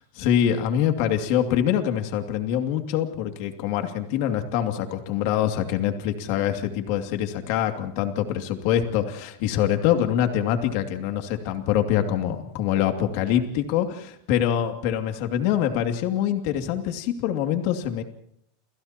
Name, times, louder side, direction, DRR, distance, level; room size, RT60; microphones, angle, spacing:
voice 1, 0.2-18.0, left 10 dB, 55° left, 5 dB, 2.5 m, -24 dB
29.5 x 29.5 x 3.0 m, 0.71 s
supercardioid pair, 150°, 0 cm